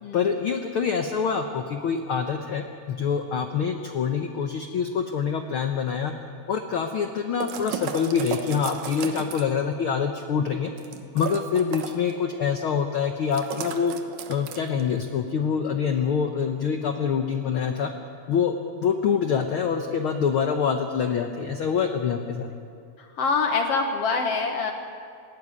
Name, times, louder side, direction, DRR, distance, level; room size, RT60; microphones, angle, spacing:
voice 1, 0.1-6.1 6.5-10.7 11.1-13.9 14.3-17.9 18.3-22.5, left 6 dB, 85° left, 5 dB, 1.1 m, -25 dB
sound 1, 7.4-9.6 10.8-12.1 13.3-14.8, right 7 dB, 65° right, 2.3 m, -34 dB
voice 2, 23.0-24.7, left 4 dB, 60° left, 4 dB, 1.7 m, -25 dB
18.0 x 16.5 x 9.7 m, 2.4 s
omnidirectional pair, 3.8 m